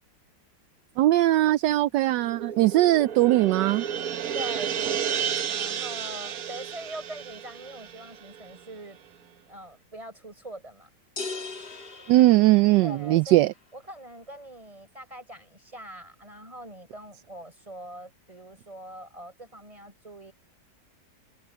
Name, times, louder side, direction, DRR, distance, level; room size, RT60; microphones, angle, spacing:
voice 1, 1.0-3.8 12.1-13.5, right 16 dB, 75° right, 1.2 m, -20 dB
sound 1, 2.2-8.8, right 8 dB, 60° right, 1.3 m, -32 dB
voice 2, 4.3-9.0 9.5-10.9 12.8-13.4 13.7-20.3, right 1 dB, 15° right, 5.5 m, -42 dB
sound 2, 11.2-13.2, left 3 dB, 35° left, 1.8 m, -38 dB
omnidirectional pair, 2.0 m